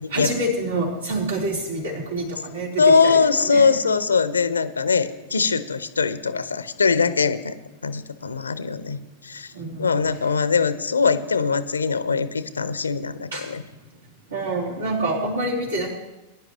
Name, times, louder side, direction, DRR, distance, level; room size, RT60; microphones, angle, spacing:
voice 1, 0.1-3.7 9.5-9.9 13.3-13.4 14.3-15.9, right 1 dB, 75° right, -4 dB, 3.8 m, -27 dB
voice 2, 2.8-7.5 7.8-9.5 9.8-13.6, left 5 dB, 75° left, 14 dB, 0.7 m, -21 dB
21.0 x 10.5 x 3.0 m, 0.99 s
figure-of-eight pair, 90°, 0 cm